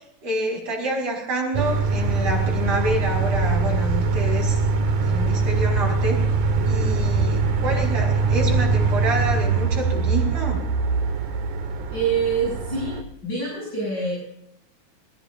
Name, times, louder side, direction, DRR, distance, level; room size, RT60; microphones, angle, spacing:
voice 1, 0.2-4.6 5.0-6.2 6.6-10.6, right 1 dB, 55° right, -1 dB, 6.4 m, -27 dB
sound 1, 1.5-13.0, right 4 dB, 80° right, 3.0 m, -22 dB
voice 2, 11.9-14.2, right 4 dB, 35° left, -6 dB, 8.2 m, -26 dB
20.5 x 20.0 x 2.7 m, 0.74 s
omnidirectional pair, 3.5 m